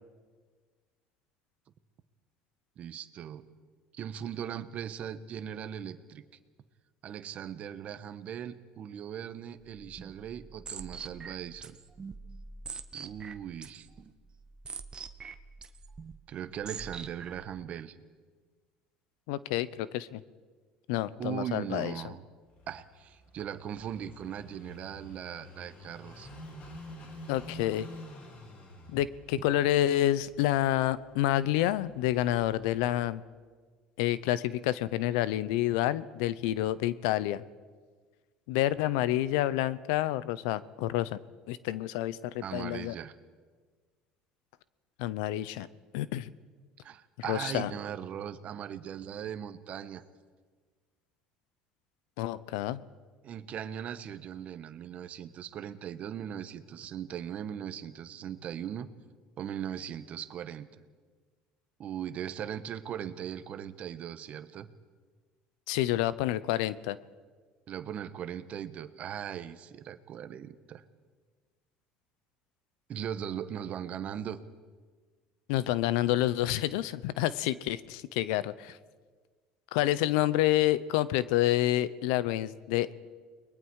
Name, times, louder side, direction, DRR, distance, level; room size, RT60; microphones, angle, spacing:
voice 1, 2.8-3.5 3.9-6.2 7.0-11.8 12.9-13.9 16.3-18.0 21.2-22.2 22.7-26.3 42.4-43.1 45.6-45.7 46.8-50.0 53.2-58.9 59.4-60.7 61.8-64.7 67.7-70.8 72.9-74.4, right 9 dB, 45° right, 12 dB, 1.2 m, -39 dB
sound 1, 9.6-17.6, right 5 dB, 30° right, 1.1 m, -45 dB
voice 2, 19.3-20.2 20.9-21.9 27.3-27.9 28.9-33.2 34.0-37.4 38.5-41.2 41.5-42.9 45.0-45.7 45.9-46.3 47.3-47.7 52.2-52.8 65.7-67.0 75.5-78.8 79.7-82.9, left 14 dB, 85° left, 17 dB, 0.7 m, -28 dB
Car passing by / Idling, 22.5-33.2, left 1 dB, 50° left, 3.6 m, -50 dB
30.0 x 21.0 x 4.8 m, 1.5 s
supercardioid pair, 110°, 3 cm